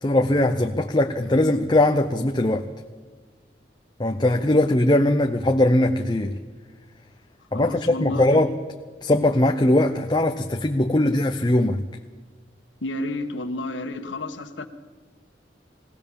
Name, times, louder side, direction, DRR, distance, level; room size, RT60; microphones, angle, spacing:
voice 1, 0.0-2.6 4.0-6.4 7.5-8.5 9.0-11.8, left 1 dB, 25° left, 4 dB, 0.7 m, -20 dB
voice 2, 7.5-8.5 12.8-14.7, left 2 dB, 85° left, 8 dB, 1.4 m, -31 dB
21.5 x 18.0 x 7.1 m, 1.5 s
head